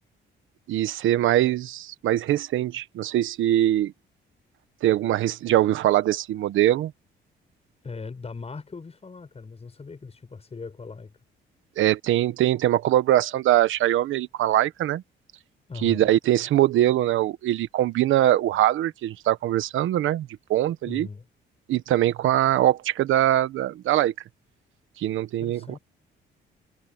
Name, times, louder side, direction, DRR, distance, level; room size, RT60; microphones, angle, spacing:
voice 1, 0.7-3.9 4.8-6.9 11.8-15.0 15.8-21.1 21.7-24.1 25.0-25.8, right 13 dB, 80° right, 1.2 m, -22 dB
voice 2, 7.8-11.1 15.7-16.1 20.8-21.2 25.4-25.8, left 4 dB, 30° left, 7.7 m, -39 dB
cardioid pair, 90°, 20 cm